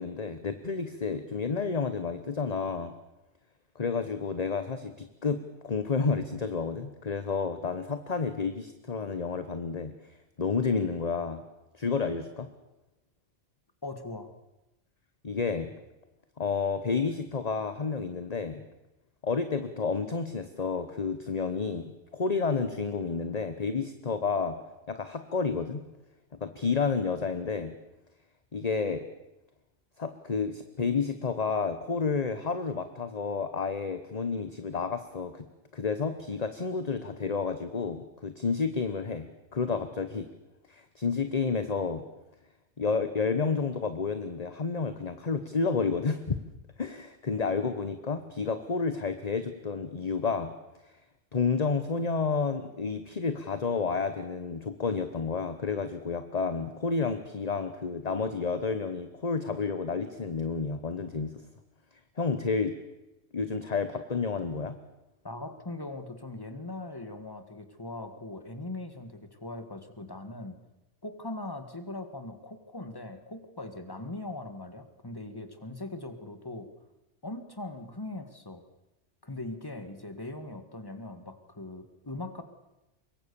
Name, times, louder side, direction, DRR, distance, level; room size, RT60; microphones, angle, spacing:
voice 1, 0.0-2.9 3.7-9.9 10.4-11.4 11.8-12.5 15.2-15.7 16.4-18.6 19.2-24.6 24.9-25.8 26.4-27.7 28.5-29.0 30.0-35.4 35.7-40.3 40.7-42.0 42.8-46.4 46.8-50.5 51.3-61.4 62.2-62.7 63.3-64.8, left 4 dB, 35° left, 10 dB, 1.2 m, -30 dB
voice 2, 13.8-14.3 65.2-70.6 71.0-76.7 77.2-78.6 79.2-82.4, left 2 dB, 20° left, 9 dB, 1.8 m, -40 dB
25.0 x 22.0 x 7.0 m, 0.99 s
omnidirectional pair, 1.2 m